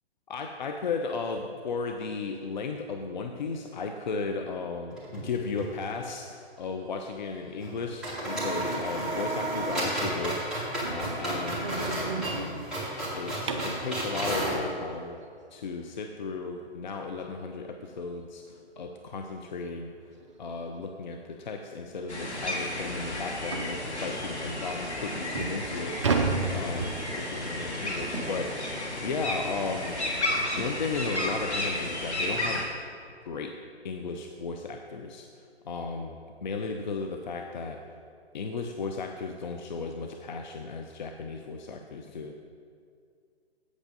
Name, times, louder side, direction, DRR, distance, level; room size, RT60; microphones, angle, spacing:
voice 1, 0.3-12.7 13.1-15.2 15.5-19.9 20.4-30.0 30.5-32.7 33.2-33.5 33.8-35.3 35.6-36.2 36.4-37.8 38.3-42.3, left 4 dB, 45° left, 4 dB, 0.6 m, -35 dB
sound 1, 4.9-5.7 6.0-6.1 7.6-7.7 8.0-14.6, right 1 dB, ahead, 2.0 m, -32 dB
sound 2, 10.8-13.9 16.7-16.8 17.3-17.5 17.8-17.9 18.4-18.5 19.6-19.8 20.1-20.3 21.0-21.1 21.4-21.5 22.0-22.1 23.5-23.8 24.5-24.6 25.1-27.4, right 4 dB, 30° right, 0.5 m, -32 dB
sound 3, 22.1-32.6, left 1 dB, 85° left, 2.2 m, -32 dB
8.3 x 8.2 x 5.3 m, 2.3 s
figure-of-eight pair, 140°, 33 cm